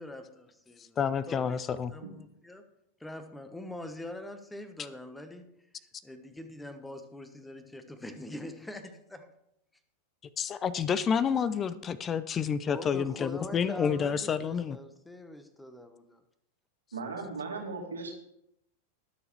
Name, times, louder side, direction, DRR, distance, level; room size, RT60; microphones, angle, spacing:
voice 1, 0.0-1.0 1.3-1.5 1.9-2.6 3.0-5.5 6.0-9.3 12.6-16.2, left 1 dB, 5° left, 9 dB, 1.2 m, -43 dB
voice 2, 0.8-1.9 10.4-14.8, left 7 dB, 25° left, 16 dB, 0.5 m, -29 dB
voice 3, 16.9-18.1, right 4 dB, 70° right, 1 dB, 2.2 m, -37 dB
20.5 x 6.9 x 3.2 m, 0.79 s
figure-of-eight pair, 90°, 0 cm